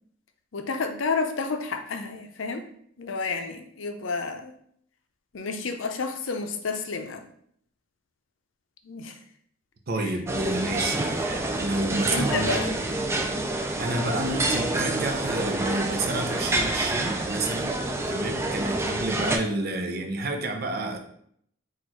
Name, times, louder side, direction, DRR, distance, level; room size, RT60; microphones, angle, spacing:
voice 1, 0.5-2.7 3.0-4.5 5.3-7.3 8.8-9.2 10.0-10.1 12.1-12.8, left 4 dB, 70° left, 5 dB, 0.5 m, -30 dB
voice 2, 9.9-12.6 13.1-13.4 13.8-17.8 18.1-21.0, right 2 dB, 50° right, 4 dB, 0.7 m, -30 dB
sound 1, 10.3-19.4, right 2 dB, 15° right, 0.4 m, -27 dB
4.3 x 2.5 x 4.4 m, 0.67 s
head